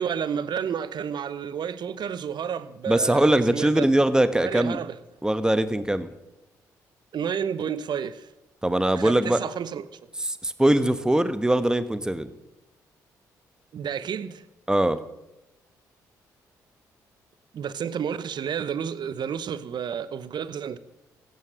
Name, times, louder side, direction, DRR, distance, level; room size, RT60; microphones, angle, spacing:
voice 1, 0.0-3.9 4.4-5.0 7.1-8.3 9.0-9.9 13.7-14.4 17.5-20.8, right 8 dB, 55° right, 0.9 m, -31 dB
voice 2, 2.9-4.8 5.2-6.1 8.6-9.4 10.2-12.3 14.7-15.0, right 1 dB, 10° right, 1.2 m, -22 dB
16.5 x 9.2 x 6.3 m
hypercardioid pair, 45°, 9 cm